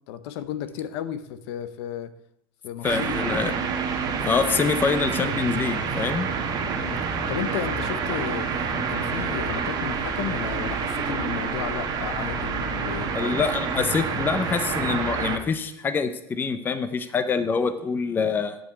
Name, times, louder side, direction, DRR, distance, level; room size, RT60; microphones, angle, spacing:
voice 1, 0.1-2.1 2.6-3.5 6.7-13.4, left 10 dB, 70° left, 13 dB, 0.8 m, -34 dB
voice 2, 2.8-3.5 4.2-6.3 13.1-18.6, left 5 dB, 15° left, 10 dB, 0.5 m, -25 dB
sound 1, 2.8-15.4, right 5 dB, 30° right, 1.2 m, -28 dB
10.5 x 5.1 x 7.9 m, 0.80 s
cardioid pair, 165°, 14 cm